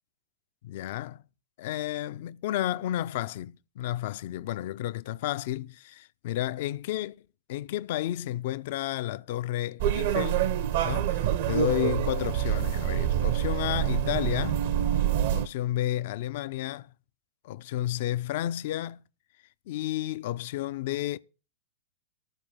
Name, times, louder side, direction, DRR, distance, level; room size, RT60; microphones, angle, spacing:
voice 1, 0.6-1.2 1.6-7.2 7.5-10.5 10.8-14.6 15.3-16.9 17.4-19.0 19.7-21.2, left 13 dB, 50° left, 0.4 m, -31 dB
sound 1, 9.8-15.5, right 11 dB, 55° right, 0.8 m, -26 dB
13.5 x 4.6 x 7.1 m
figure-of-eight pair, 100°, 0 cm